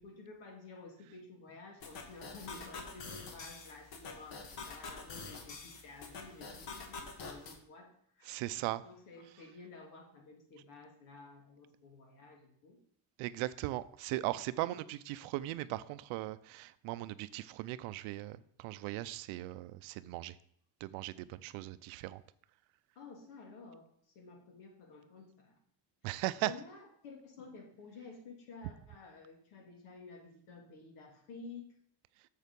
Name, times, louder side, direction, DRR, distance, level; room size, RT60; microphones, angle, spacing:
voice 1, 0.0-8.3 8.8-12.8 14.6-14.9 23.0-25.6 26.0-31.6, left 3 dB, 75° left, 2.7 m, -52 dB
sound 1, 1.8-7.6, left 4 dB, 60° left, 1.8 m, -46 dB
voice 2, 8.3-8.8 13.2-20.3 20.8-22.2 26.0-26.5, right 17 dB, 75° right, 0.6 m, -38 dB
7.2 x 6.5 x 5.3 m
cardioid pair, 125°, 50 cm